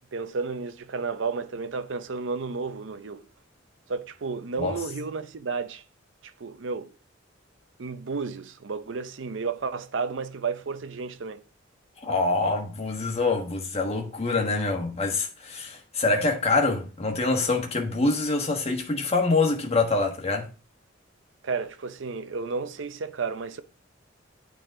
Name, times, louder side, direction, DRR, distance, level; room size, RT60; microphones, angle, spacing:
voice 1, 0.1-3.2 3.9-5.8 6.2-6.9 7.8-11.4 21.4-23.6, right 4 dB, 70° right, 0.6 m, -32 dB
voice 2, 12.0-20.5, left 3 dB, 35° left, 1.4 m, -25 dB
9.1 x 3.9 x 3.7 m
head